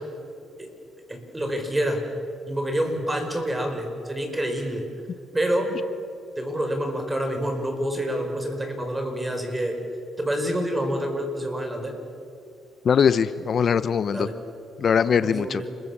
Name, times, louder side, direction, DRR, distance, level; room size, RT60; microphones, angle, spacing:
voice 1, 1.1-2.0 2.5-4.9 5.3-5.7 6.4-9.8 10.2-12.0 14.1-14.4 15.2-15.7, equal, 15° right, 5 dB, 5.4 m, -27 dB
voice 2, 12.8-14.3 14.8-15.6, left 7 dB, 50° left, 14 dB, 0.7 m, -21 dB
29.5 x 22.0 x 7.3 m, 2.5 s
cardioid pair, 90°, 0 cm